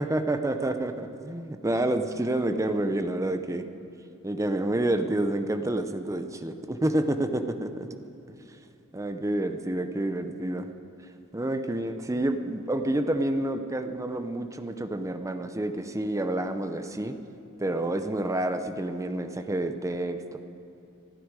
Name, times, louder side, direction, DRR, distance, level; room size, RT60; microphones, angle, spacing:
voice 1, 0.0-3.6 4.2-8.0 8.3-8.4 8.9-10.7 11.3-17.2 17.6-20.4, right 1 dB, 15° right, 8 dB, 0.6 m, -28 dB
27.0 x 10.0 x 4.8 m, 2.9 s
head